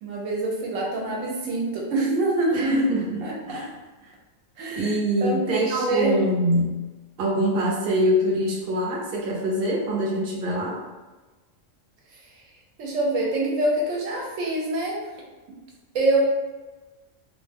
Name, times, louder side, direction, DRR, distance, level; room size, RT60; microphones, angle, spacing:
voice 1, 0.0-2.7 3.2-3.6 4.6-6.1 12.8-15.0 15.9-16.2, right 2 dB, 80° right, -2 dB, 1.0 m, -25 dB
voice 2, 2.5-3.2 3.5-3.7 4.0-4.1 4.7-6.8 7.2-10.8, equal, 55° right, -3 dB, 0.8 m, -24 dB
2.4 x 2.1 x 3.3 m, 1.2 s
omnidirectional pair, 1.3 m